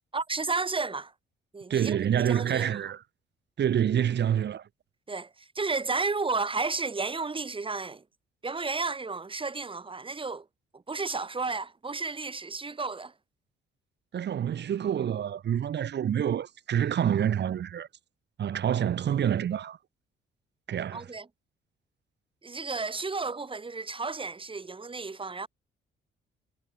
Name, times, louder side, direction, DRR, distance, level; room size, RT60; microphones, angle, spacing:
voice 1, 0.1-1.1 1.5-2.8 5.1-8.0 8.4-10.5 10.7-13.1 20.9-21.3 22.4-25.5, right 4 dB, 25° right, 4.5 m, -32 dB
voice 2, 1.7-3.0 3.6-4.7 14.1-17.9 18.4-19.8 20.7-21.1, right 9 dB, 60° right, 2.6 m, -27 dB
cardioid pair, 90°, 20 cm